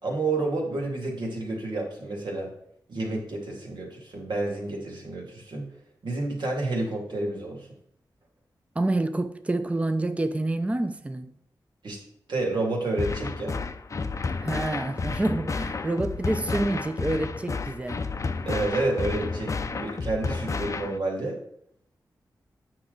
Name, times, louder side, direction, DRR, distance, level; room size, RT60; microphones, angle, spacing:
voice 1, 0.0-2.5 2.9-5.7 6.0-7.7 11.8-12.0 12.3-13.6 18.4-21.4, right 2 dB, 80° right, 2.4 m, -29 dB
voice 2, 8.8-11.3 14.4-18.0, right 2 dB, 15° right, 0.5 m, -28 dB
sound 1, 13.0-21.0, left 4 dB, 45° left, 0.5 m, -31 dB
8.7 x 6.0 x 3.9 m
wide cardioid pair, 85°, 8 cm